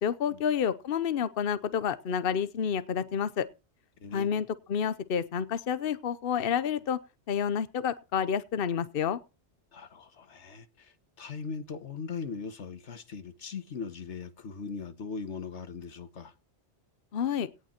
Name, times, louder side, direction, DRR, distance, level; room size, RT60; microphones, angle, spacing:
voice 1, 0.0-3.5 4.1-7.0 7.3-9.2 17.1-17.5, left 7 dB, 55° left, 1.0 m, -29 dB
voice 2, 4.0-4.4 9.7-16.3, left 5 dB, 85° left, 1.6 m, -40 dB
17.5 x 9.0 x 4.4 m
omnidirectional pair, 1.2 m